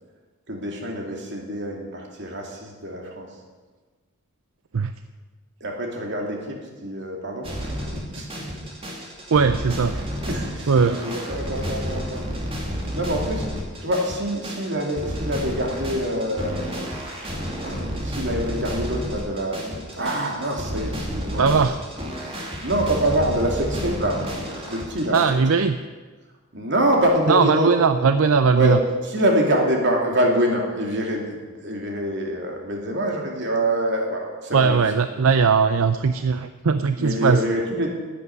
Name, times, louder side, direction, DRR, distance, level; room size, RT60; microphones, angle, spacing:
voice 1, 0.5-3.3 5.6-8.5 10.3-12.3 12.9-13.5 13.8-16.7 17.6-21.5 22.6-24.2 24.7-25.2 25.5-25.6 26.5-27.7 28.5-28.8 29.1-34.8 37.0-37.9, right 1 dB, 55° right, 1 dB, 2.8 m, -25 dB
sound 1, 7.4-25.2, equal, 25° right, 2.6 m, -31 dB
voice 2, 9.3-9.9 10.7-11.0 21.4-21.7 25.1-25.8 27.3-28.8 34.5-37.4, right 5 dB, 80° right, 10 dB, 0.6 m, -19 dB
12.0 x 8.5 x 9.5 m, 1.4 s
head